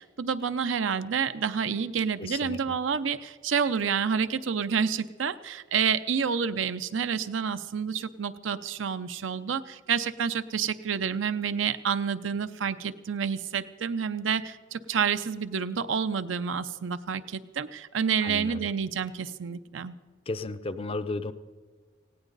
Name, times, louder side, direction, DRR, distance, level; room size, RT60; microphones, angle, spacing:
voice 1, 0.0-19.9, right 6 dB, 80° right, 12 dB, 0.6 m, -29 dB
voice 2, 2.2-2.8 18.2-18.7 20.3-21.3, left 2 dB, 30° left, 12 dB, 0.5 m, -34 dB
18.0 x 16.5 x 4.0 m, 1.5 s
head